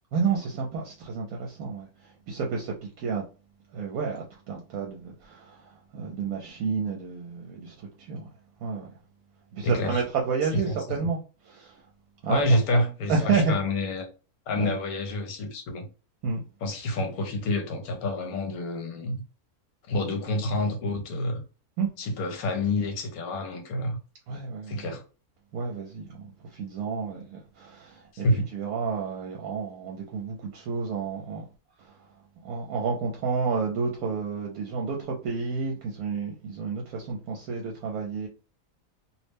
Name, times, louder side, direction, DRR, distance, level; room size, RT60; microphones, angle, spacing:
voice 1, 0.1-3.2 3.7-8.3 8.6-8.9 9.5-11.8 12.2-12.4 12.7-12.8 13.1-13.6 14.6-14.7 16.2-16.4 21.8-21.9 24.3-24.9 25.5-28.3 28.5-31.5 31.8-31.9 32.4-38.3, right 5 dB, 75° right, 1.0 m, -30 dB
voice 2, 9.6-10.0 10.5-11.1 12.3-14.1 14.5-15.9 16.6-19.2 19.9-21.4 22.0-24.0 24.7-25.0 28.2-28.5, left 1 dB, 75° left, 1.1 m, -28 dB
2.7 x 2.1 x 3.3 m
omnidirectional pair, 1.6 m